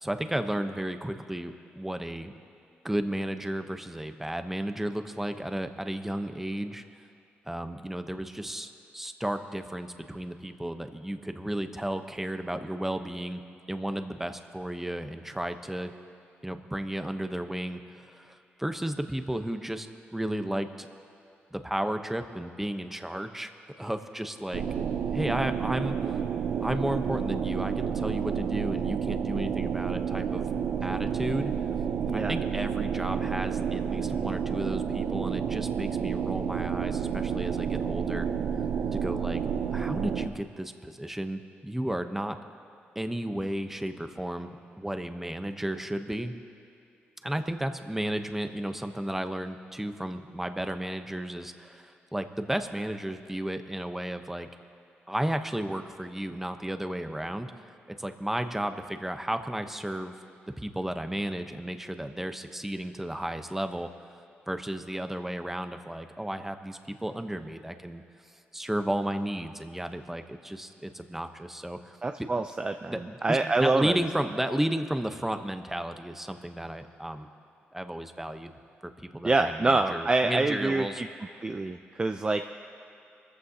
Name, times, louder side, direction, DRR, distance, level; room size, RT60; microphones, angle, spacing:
voice 1, 0.0-2.3 2.8-6.8 7.5-13.4 13.7-15.9 16.4-20.9 21.5-23.5 23.8-24.6 25.1-26.2 26.6-30.5 30.8-31.5 32.1-38.3 38.9-39.4 39.7-42.4 42.9-46.3 47.2-54.5 55.1-57.7 58.0-60.1 60.6-63.9 64.5-68.0 68.5-72.0 72.9-77.3 77.7-78.5 78.8-81.0, right 1 dB, 5° right, 8 dB, 0.9 m, -33 dB
sound 1, 24.5-40.3, right 7 dB, 70° right, 0.7 m, -30 dB
voice 2, 72.0-74.0 79.2-81.1 81.4-82.4, right 3 dB, 25° right, 6 dB, 0.5 m, -26 dB
24.5 x 14.5 x 2.9 m, 2.7 s
cardioid pair, 80°, 4 cm